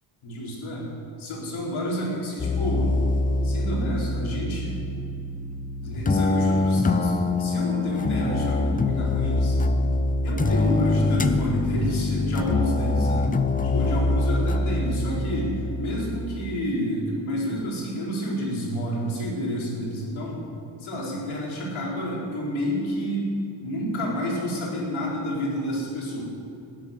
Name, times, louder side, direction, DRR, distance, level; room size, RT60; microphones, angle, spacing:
voice 1, 0.2-0.9 1.2-3.0 3.4-4.8 5.8-9.6 10.2-13.3 13.6-20.4 20.8-23.3 23.6-26.2, equal, 80° left, -4 dB, 4.3 m, -29 dB
sound 1, 2.4-16.4, left 2 dB, 20° left, 0.4 m, -24 dB
15.0 x 10.0 x 6.6 m, 2.5 s
wide cardioid pair, 175°, 47 cm